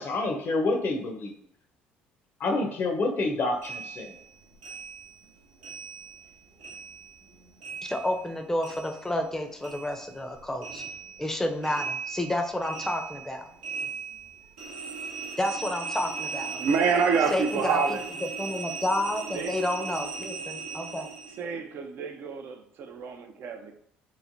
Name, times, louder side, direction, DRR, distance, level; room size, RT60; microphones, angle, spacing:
voice 1, 0.0-1.3 2.4-4.1, left 2 dB, 50° left, 3 dB, 0.6 m, -28 dB
sound 1, 3.6-6.3 6.6-9.3 9.6-21.4, right 5 dB, 90° right, 0.7 m, -38 dB
voice 2, 7.8-10.8 11.2-13.5 15.4-16.6 17.3-17.8 18.4-21.1, left 1 dB, 10° left, 5 dB, 0.5 m, -30 dB
voice 3, 16.5-18.0 19.3-19.5 21.4-23.7, right 5 dB, 60° right, 5 dB, 0.4 m, -27 dB
3.0 x 2.1 x 2.6 m, 0.68 s
hypercardioid pair, 65°, 5 cm